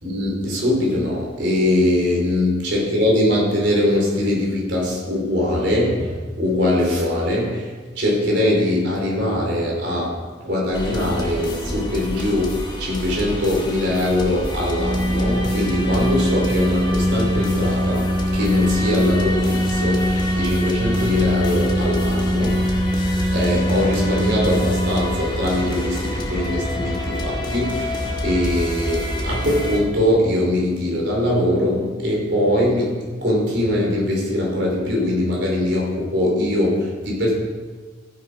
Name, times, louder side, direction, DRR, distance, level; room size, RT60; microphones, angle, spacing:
voice 1, 0.0-22.8 23.3-32.9 33.2-37.3, left 1 dB, 80° right, -2 dB, 4.3 m, -22 dB
sound 1, 10.7-29.8, equal, 25° left, 2.2 m, -27 dB
Organ, 14.7-25.5, equal, 15° right, 0.4 m, -23 dB
15.5 x 7.7 x 5.2 m, 1.4 s
head